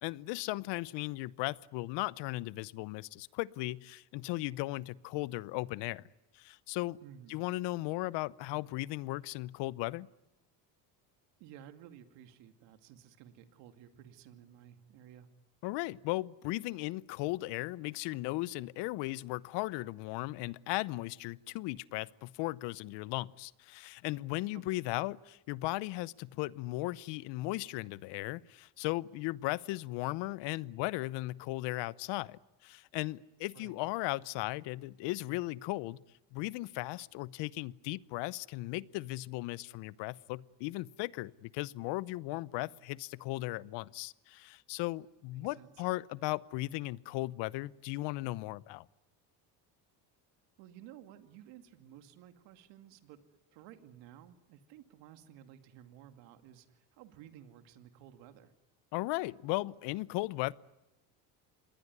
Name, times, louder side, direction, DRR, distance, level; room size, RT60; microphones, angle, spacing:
voice 1, 0.0-6.1 6.3-7.0 7.3-10.1 15.6-36.0 36.3-48.9 58.9-60.5, left 19 dB, 75° left, 0.9 m, -37 dB
voice 2, 7.0-7.4 11.4-15.3 24.5-24.8 33.5-33.8 45.3-45.8 50.6-53.2 53.5-58.5, right 10 dB, 80° right, 2.4 m, -54 dB
26.5 x 20.5 x 9.7 m
supercardioid pair, 95°, 43 cm